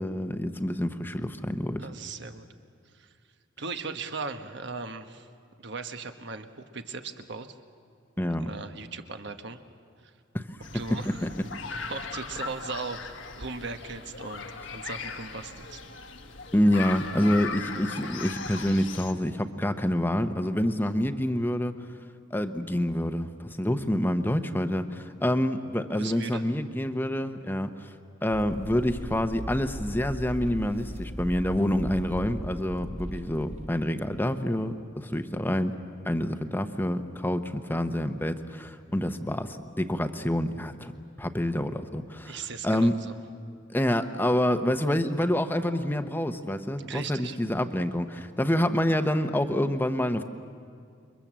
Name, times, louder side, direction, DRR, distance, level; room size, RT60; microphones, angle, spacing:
voice 1, 0.0-1.8 8.2-8.5 10.3-10.4 10.7-11.3 16.5-21.7 22.3-27.9 28.2-35.7 36.0-40.9 41.2-43.0 43.7-50.2, left 1 dB, 10° left, 8 dB, 0.9 m, -27 dB
voice 2, 1.8-2.5 2.9-3.1 3.6-5.3 5.6-7.5 8.4-9.6 10.0-10.1 10.7-11.3 11.9-14.5 14.7-15.8 25.9-26.4 42.2-43.1 46.8-47.4, right 4 dB, 60° right, 7 dB, 1.3 m, -38 dB
sound 1, 10.6-19.1, left 4 dB, 70° left, 1.6 m, -38 dB
sound 2, 28.3-33.7, equal, 35° right, 1.0 m, -38 dB
29.0 x 23.0 x 7.5 m, 2.3 s
head